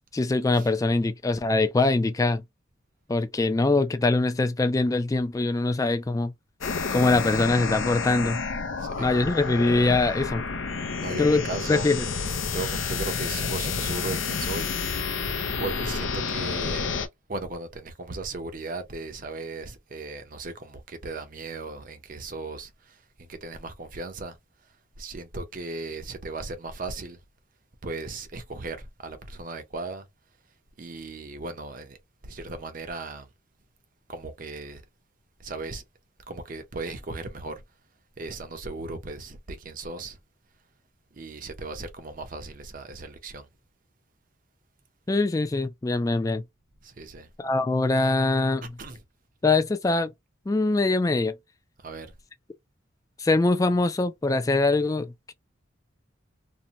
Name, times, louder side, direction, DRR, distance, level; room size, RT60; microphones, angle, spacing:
voice 1, 0.1-2.4 3.1-6.3 6.9-8.4 9.0-10.4 11.2-11.4 11.7-12.1 45.1-46.4 47.4-48.7 49.4-50.1 50.5-51.4 53.2-55.3, left 2 dB, 15° left, 0.3 m, -23 dB
sound 1, 6.6-17.1, left 5 dB, 80° left, 0.5 m, -30 dB
voice 2, 8.8-9.1 11.0-11.9 12.5-14.7 15.6-17.0 17.3-24.4 25.0-27.2 27.8-30.1 30.8-32.0 32.2-33.3 34.1-34.8 35.4-35.8 36.3-37.6 38.2-40.2 41.1-43.5 46.8-47.3 48.8-49.0 51.8-52.1, right 3 dB, 45° right, 0.6 m, -36 dB
2.6 x 2.1 x 2.8 m
head